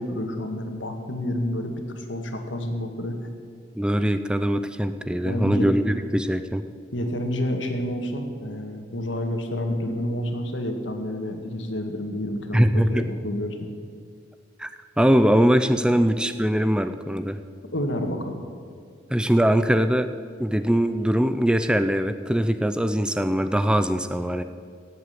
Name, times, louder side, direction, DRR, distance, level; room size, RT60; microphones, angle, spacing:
voice 1, 0.0-3.2 5.2-5.7 6.9-13.6 17.7-18.4, left 1 dB, 85° left, 4 dB, 2.0 m, -29 dB
voice 2, 3.8-6.6 12.5-13.1 14.6-14.7 15.0-17.4 19.1-20.1 20.4-24.4, equal, 5° right, 10 dB, 0.5 m, -22 dB
17.0 x 8.0 x 9.4 m, 2.2 s
head